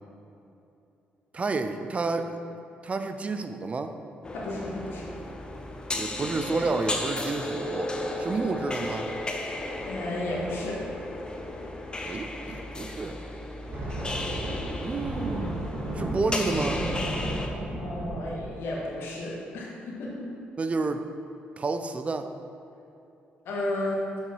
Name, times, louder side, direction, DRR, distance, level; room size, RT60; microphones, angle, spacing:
voice 1, 1.3-2.4 2.8-3.9 6.0-9.1 12.1-13.2 14.8-15.6 15.9-16.8 20.6-21.0 21.6-22.3, right 3 dB, 35° right, 8 dB, 0.5 m, -30 dB
sound 1, 4.2-17.5, left 1 dB, 25° left, 0.8 m, -34 dB
voice 2, 4.3-5.1 9.8-10.8 17.8-20.3 23.4-24.0, left 1 dB, 80° left, -4 dB, 1.8 m, -33 dB
sound 2, 7.9-9.6 13.5-18.3, right 1 dB, 65° right, 1.8 m, -34 dB
6.8 x 5.5 x 4.6 m, 2.8 s
cardioid pair, 80°, 4 cm